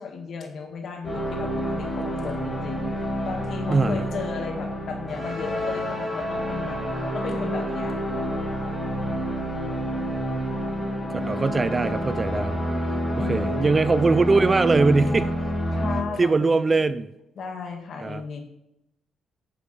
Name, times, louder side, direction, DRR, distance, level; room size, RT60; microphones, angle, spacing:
voice 1, 0.0-6.8 7.1-8.0 13.2-14.0 15.7-16.6 17.4-18.4, left 5 dB, 60° left, 4 dB, 1.8 m, -35 dB
sound 1, 1.0-16.0, equal, 20° left, 3.1 m, -28 dB
voice 2, 3.7-4.0 11.3-12.6 13.2-15.3 16.2-17.1 18.0-18.2, right 3 dB, 25° right, 14 dB, 0.4 m, -21 dB
10.0 x 7.0 x 3.3 m, 0.85 s
cardioid pair, 90°, 0 cm